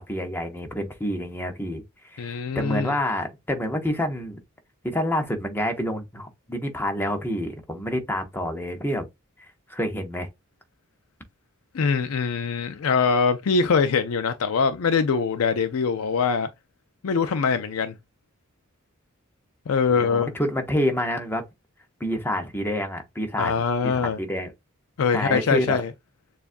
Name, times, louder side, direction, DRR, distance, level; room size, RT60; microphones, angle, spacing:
voice 1, 0.0-4.4 4.8-9.1 9.7-10.3 20.0-21.4 22.0-24.5 25.1-25.8, equal, 10° left, 0.8 m, -28 dB
voice 2, 2.2-2.9 11.7-16.5 17.0-17.9 19.7-20.3 23.4-24.2 25.0-25.9, left 5 dB, 80° left, 0.5 m, -23 dB
6.9 x 2.4 x 2.5 m
head